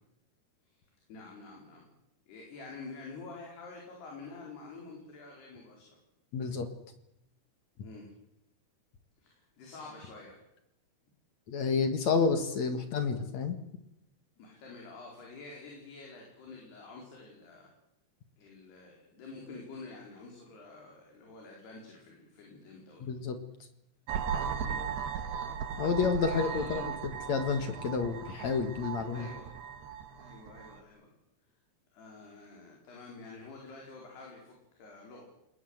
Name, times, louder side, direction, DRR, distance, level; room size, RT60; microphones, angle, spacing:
voice 1, 1.1-1.8 2.3-6.0 7.8-8.1 9.2-10.4 14.4-17.7 18.4-23.1 24.5-24.9 26.2-26.8 29.1-29.5 30.1-31.1 31.9-35.3, left 3 dB, 70° left, -1 dB, 6.5 m, -48 dB
voice 2, 6.3-6.7 11.5-13.6 23.0-23.4 25.8-26.9 27.3-29.3, left 5 dB, 50° left, 8 dB, 2.4 m, -30 dB
sound 1, 24.1-30.8, right 7 dB, 70° right, 3.7 m, -37 dB
29.0 x 20.0 x 8.0 m, 0.85 s
omnidirectional pair, 4.9 m